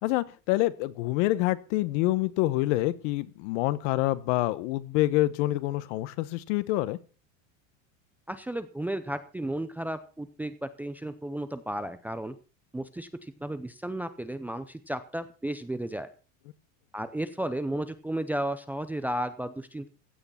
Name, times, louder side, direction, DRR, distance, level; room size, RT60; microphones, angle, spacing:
voice 1, 0.0-7.0, left 17 dB, 60° left, 17 dB, 1.1 m, -27 dB
voice 2, 8.3-12.4 12.7-16.1 16.9-19.9, right 1 dB, 5° right, 11 dB, 0.5 m, -33 dB
16.0 x 8.7 x 5.7 m, 0.35 s
supercardioid pair, 155°, 40 cm